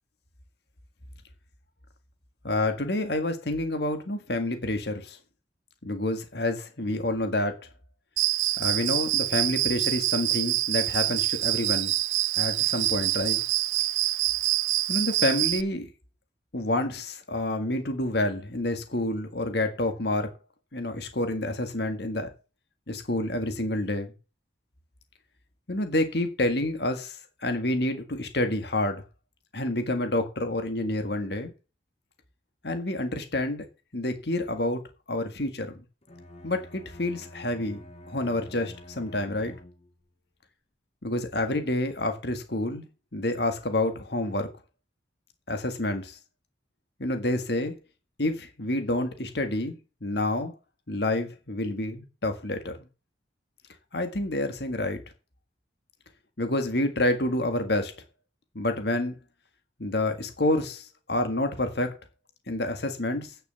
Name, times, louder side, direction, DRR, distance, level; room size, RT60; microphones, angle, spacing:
voice 1, 2.4-5.2 5.8-7.6 8.6-11.9 12.4-13.4 14.9-15.9 16.5-20.3 20.7-22.3 22.9-24.1 25.7-29.0 29.5-31.5 32.6-33.6 33.9-34.8 35.1-35.7 36.4-39.5 41.0-42.8 43.1-44.5 45.5-46.2 47.0-47.7 48.2-49.8 50.0-50.5 50.9-52.7 53.9-55.0 56.4-57.9 58.6-59.2 59.8-62.0 62.5-63.3, left 1 dB, 60° left, 1.8 m, -28 dB
Cricket, 8.2-15.6, right 17 dB, 85° right, 0.5 m, -26 dB
Bowed string instrument, 36.0-40.1, left 1 dB, 35° left, 1.4 m, -48 dB
9.1 x 6.7 x 6.9 m
head